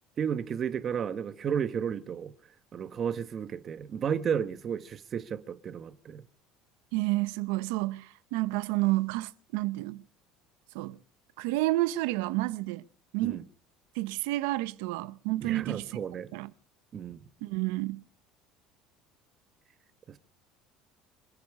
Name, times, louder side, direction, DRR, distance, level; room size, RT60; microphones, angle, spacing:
voice 1, 0.2-2.3 2.7-6.2 13.2-13.4 15.4-16.3 16.9-17.2 20.1-20.2, right 7 dB, 35° right, 1.3 m, -33 dB
voice 2, 6.9-10.0 10.7-11.0 11.4-12.8 13.1-13.4 14.0-15.8 16.3-16.5 17.4-18.0, right 19 dB, 90° right, 0.8 m, -30 dB
26.5 x 10.5 x 4.9 m
cardioid pair, 145°, 0 cm